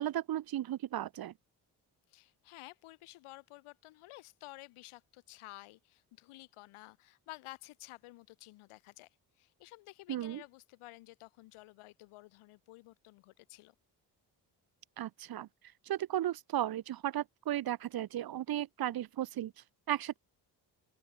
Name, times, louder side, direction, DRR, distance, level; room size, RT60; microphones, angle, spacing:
voice 1, 0.0-1.3 10.1-10.4 15.0-15.5 15.9-19.5 19.9-20.2, right 12 dB, 50° right, 0.7 m, -35 dB
voice 2, 2.1-9.1 9.4-13.7, left 19 dB, 80° left, 1.8 m, -53 dB
open air
hypercardioid pair, 45°, 49 cm